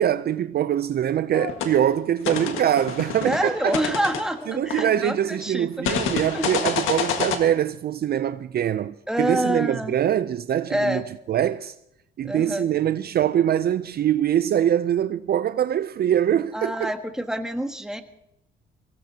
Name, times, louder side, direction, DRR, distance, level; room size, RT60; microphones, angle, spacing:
voice 1, 0.0-4.0 4.5-11.7 12.2-16.9, right 10 dB, 50° right, 0.5 m, -23 dB
sound 1, 1.3-1.7 2.2-5.2 5.8-7.4, left 6 dB, 90° left, 1.7 m, -28 dB
voice 2, 3.2-5.9 6.3-6.4 9.1-10.0 10.7-11.0 12.2-12.6 16.5-18.0, equal, 5° right, 1.4 m, -27 dB
23.5 x 17.0 x 2.8 m
cardioid pair, 90°, 20 cm